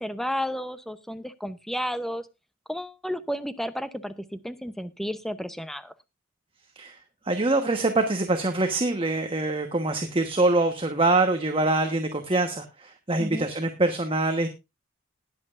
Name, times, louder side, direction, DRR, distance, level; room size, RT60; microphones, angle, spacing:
voice 1, 0.0-2.3 2.7-5.9 13.2-13.5, equal, ahead, 13 dB, 0.7 m, -32 dB
voice 2, 7.2-14.5, right 2 dB, 25° right, 6 dB, 1.2 m, -24 dB
20.0 x 7.8 x 2.5 m, 0.24 s
head